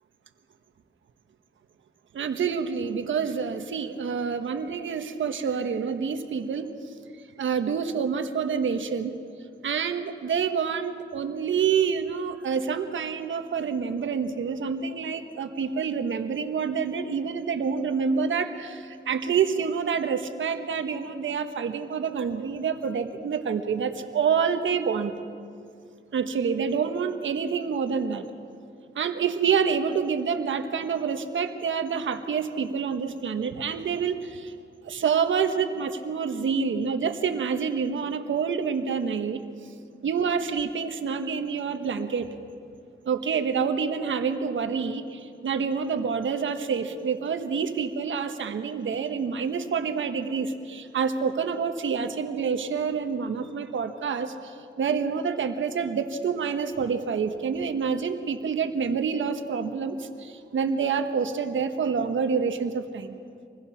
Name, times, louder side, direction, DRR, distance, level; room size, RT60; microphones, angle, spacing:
voice 1, 2.1-6.9 7.4-9.2 9.6-25.1 26.1-28.3 28.9-34.5 34.8-39.4 40.0-42.3 43.0-63.2, right 6 dB, 85° right, 7 dB, 1.4 m, -27 dB
27.0 x 20.5 x 5.9 m, 2.3 s
cardioid pair, 80°, 19 cm